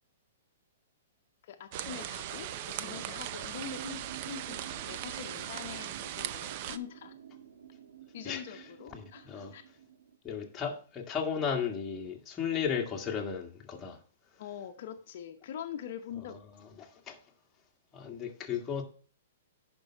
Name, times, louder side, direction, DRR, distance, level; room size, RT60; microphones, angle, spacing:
voice 1, 1.4-7.1 8.1-9.6 14.4-16.4, left 9 dB, 55° left, 0.8 m, -44 dB
sound 1, 1.7-6.8, right 11 dB, 45° right, 0.5 m, -39 dB
sound 2, 3.6-10.1, right 9 dB, 80° right, 1.8 m, -49 dB
voice 2, 8.9-9.5 10.2-14.0 16.8-17.2 17.9-18.8, left 7 dB, 15° left, 1.6 m, -35 dB
10.5 x 5.4 x 4.5 m
hypercardioid pair, 150°, 0 cm